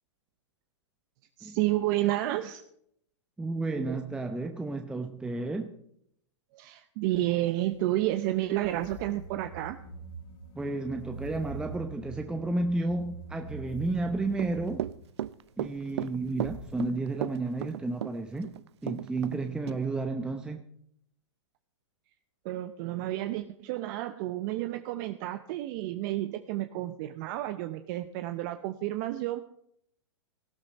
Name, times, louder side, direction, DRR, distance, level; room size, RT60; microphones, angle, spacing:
voice 1, 1.4-2.6 3.7-4.0 6.5-9.8 22.4-29.4, right 15 dB, 45° right, 0.8 m, -31 dB
voice 2, 3.4-5.7 10.6-14.8 15.6-18.5 18.8-20.7, right 2 dB, 5° right, 0.7 m, -32 dB
sound 1, 7.4-18.0, left 4 dB, 55° left, 3.1 m, -52 dB
sound 2, 9.0-14.9, right 4 dB, 75° left, 5.4 m, -44 dB
Run / Walk footsteps, 14.3-19.4 19.7-19.8, right 12 dB, 70° right, 0.5 m, -34 dB
18.0 x 12.0 x 4.2 m
hypercardioid pair, 125°, 15 cm